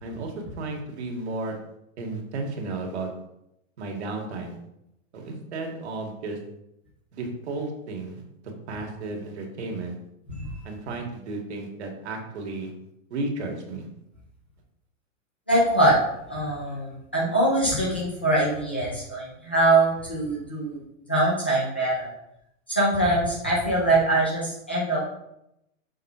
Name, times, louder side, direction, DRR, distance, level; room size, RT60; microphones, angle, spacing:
voice 1, 0.0-1.6 2.0-3.1 3.8-4.6 5.1-6.4 7.1-8.2 8.7-10.0 10.6-12.7 13.1-13.9, right 3 dB, 55° right, 2 dB, 1.8 m, -33 dB
voice 2, 15.5-15.9 16.3-20.8 21.1-22.1 22.7-25.1, right 1 dB, 10° left, -7 dB, 0.3 m, -23 dB
6.6 x 3.8 x 5.5 m, 0.83 s
supercardioid pair, 175°, 39 cm